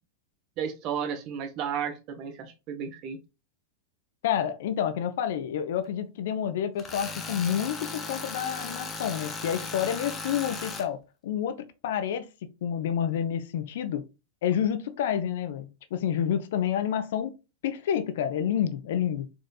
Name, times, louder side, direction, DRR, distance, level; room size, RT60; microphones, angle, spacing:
voice 1, 0.6-3.2, right 7 dB, 40° right, 0.7 m, -33 dB
voice 2, 4.2-11.0 11.2-11.6 11.8-12.3 12.6-14.1 14.4-17.3 17.6-19.3, left 9 dB, 55° left, 0.4 m, -29 dB
Tools, 6.8-10.9, left 3 dB, 20° left, 0.7 m, -37 dB
4.0 x 2.6 x 2.3 m
figure-of-eight pair, 90°, 0 cm